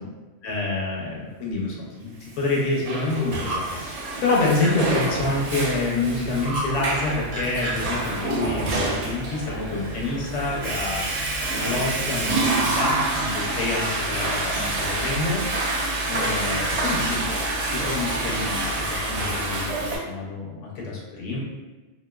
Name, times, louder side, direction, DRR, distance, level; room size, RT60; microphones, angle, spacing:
voice 1, 0.4-15.4 16.1-17.2 17.7-21.4, left 2 dB, 75° left, -3 dB, 0.9 m, -27 dB
Water / Toilet flush, 2.5-20.0, right 2 dB, 90° right, 0.3 m, -27 dB
sound 1, 3.1-3.6 4.0-4.7 6.3-6.7 7.0-7.8 9.2-18.5, right 2 dB, 55° right, 0.9 m, -38 dB
2.9 x 2.5 x 2.3 m, 1.2 s
omnidirectional pair, 1.3 m